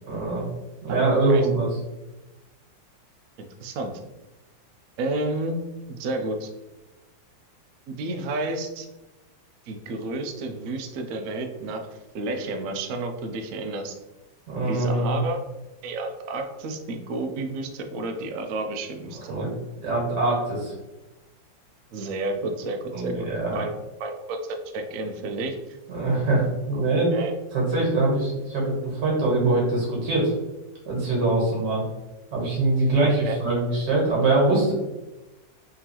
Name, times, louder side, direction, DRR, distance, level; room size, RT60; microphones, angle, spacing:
voice 1, 0.1-0.5 0.8-1.7 14.5-15.2 19.3-19.5 19.8-20.7 22.9-23.6 25.9-27.1 27.5-30.3 30.9-31.8 32.3-34.7, right 2 dB, 65° right, -3 dB, 2.1 m, -23 dB
voice 2, 0.9-1.5 3.6-3.9 5.0-5.6 5.9-6.5 7.9-8.9 9.7-13.9 14.7-15.4 15.8-19.3 21.9-23.7 24.0-25.8 27.1-27.3 33.0-33.4, right 2 dB, 85° right, 4 dB, 0.7 m, -31 dB
3.8 x 3.4 x 2.9 m, 1.1 s
omnidirectional pair, 2.0 m